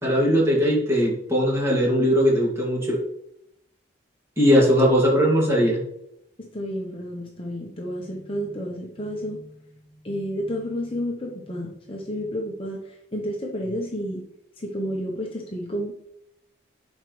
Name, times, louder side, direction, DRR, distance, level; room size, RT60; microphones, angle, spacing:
voice 1, 0.0-3.0 4.4-5.8, equal, 15° right, -4 dB, 2.2 m, -19 dB
voice 2, 6.4-14.3 14.6-15.9, equal, 30° left, -1 dB, 0.9 m, -31 dB
11.0 x 4.6 x 3.2 m, 0.74 s
head